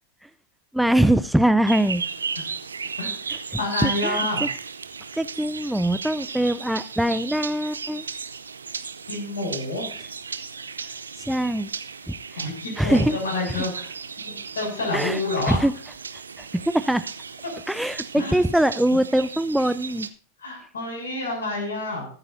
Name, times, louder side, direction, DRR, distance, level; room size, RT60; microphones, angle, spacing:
voice 1, 0.7-2.0 3.3-3.4 3.8-4.5 5.1-8.0 11.2-11.7 12.1-12.4 12.8-13.2 14.9-15.2 15.5-15.7 16.4-17.1 17.7-20.1, right 1 dB, ahead, 13 dB, 0.4 m, -22 dB
sound 1, 1.7-20.1, right 5 dB, 75° right, 0.7 m, -35 dB
voice 2, 3.6-4.5 9.1-9.9 10.8-10.9 12.4-13.9 14.3-15.6 18.2-18.4 20.4-22.1, left 2 dB, 65° left, 2 dB, 6.9 m, -28 dB
23.0 x 8.9 x 2.7 m, 0.41 s
figure-of-eight pair, 90°, 0 cm